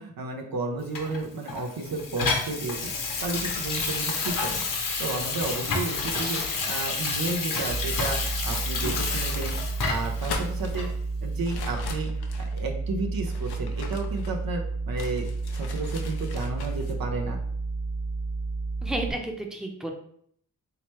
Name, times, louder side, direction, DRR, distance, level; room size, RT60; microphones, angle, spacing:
voice 1, 0.0-2.9 3.2-4.7 5.0-6.4 6.7-9.6 9.9-10.9 11.2-12.1 12.5-15.2 15.5-17.4, right 3 dB, 65° right, 2 dB, 0.7 m, -32 dB
Water tap faucet / Sink (filling or washing), 0.9-10.2 10.7-10.9, left 4 dB, 60° left, 0.9 m, -30 dB
sound 1, 3.2-7.9 8.5-9.7 10.0-10.8 11.4-12.6 13.2-14.5 15.0-16.9, left 5 dB, 90° left, 0.5 m, -40 dB
sound 2, 7.7-19.1, right 3 dB, 50° right, 1.2 m, -31 dB
voice 2, 18.8-19.9, right 1 dB, ahead, 2 dB, 0.7 m, -31 dB
3.2 x 2.9 x 3.1 m, 0.64 s
cardioid pair, 40°, 37 cm